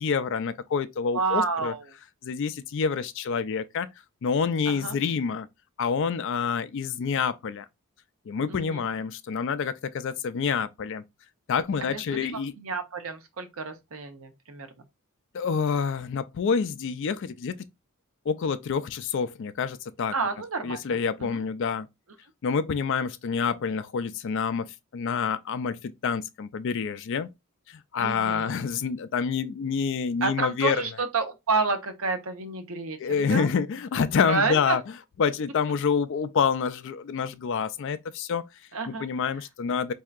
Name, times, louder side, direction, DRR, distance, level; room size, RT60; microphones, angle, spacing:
voice 1, 0.0-1.7 2.3-3.9 4.2-5.4 5.8-7.3 8.3-9.7 10.0-11.0 11.5-12.5 15.4-17.1 17.4-17.5 18.3-18.8 19.1-19.7 20.0-20.1 20.6-21.8 22.4-24.6 24.9-25.7 26.0-27.3 28.0-30.8 33.0-34.8 35.2-38.0 38.3-38.4 39.0-39.9, left 6 dB, 55° left, 0.3 m, -27 dB
voice 2, 1.1-1.8 4.7-4.9 8.5-8.9 11.8-14.7 20.1-21.4 28.0-28.6 30.2-33.5 34.3-34.8 38.7-39.1, right 4 dB, 70° right, 0.8 m, -30 dB
4.4 x 2.7 x 2.4 m
head